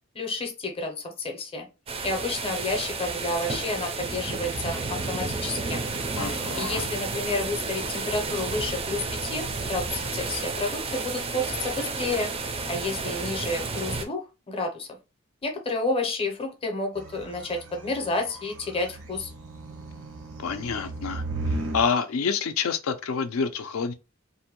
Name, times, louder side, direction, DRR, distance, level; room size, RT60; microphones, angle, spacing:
voice 1, 0.1-1.7 2.0-5.8 6.6-12.3 12.7-14.9 15.4-19.3, left 2 dB, 25° left, 0.6 m, -30 dB
sound 1, 1.9-14.1, right 3 dB, 25° right, 0.3 m, -31 dB
voice 2, 6.2-6.8 20.4-21.2 21.5-23.9, left 5 dB, 75° left, 0.4 m, -28 dB
sound 2, 17.0-21.8, right 2 dB, 90° right, 0.8 m, -36 dB
2.6 x 2.1 x 2.8 m
head